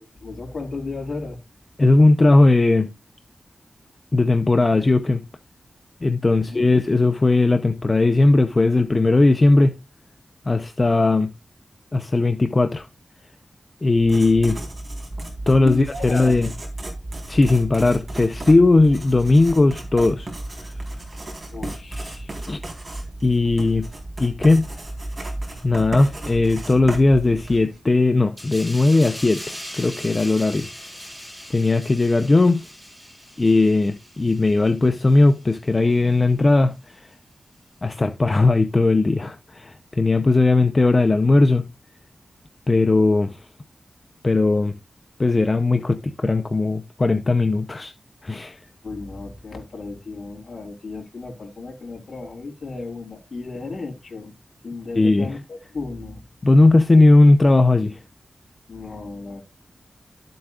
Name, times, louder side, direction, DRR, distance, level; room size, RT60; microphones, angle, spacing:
voice 1, 0.2-1.4 6.3-6.6 15.6-16.5 21.5-22.4 48.8-54.3 54.6-56.2 58.7-59.4, left 3 dB, 65° left, 4.0 m, -34 dB
voice 2, 1.8-2.9 4.1-5.2 6.0-9.7 10.5-11.3 11.9-12.9 13.8-14.6 15.5-16.5 17.3-20.3 20.6-20.7 22.5-22.6 23.2-23.9 24.2-24.7 25.6-30.7 31.5-32.6 33.4-37.1 37.8-41.7 42.7-43.4 44.2-44.7 45.2-47.9 48.2-48.6 55.0-55.3 56.4-58.0, left 2 dB, 30° left, 0.7 m, -18 dB
Writing, 14.0-27.8, right 1 dB, 40° right, 4.1 m, -34 dB
sound 1, 28.4-35.5 35.9-36.1, equal, 10° right, 6.8 m, -40 dB
13.0 x 7.8 x 2.4 m
wide cardioid pair, 120°, 0 cm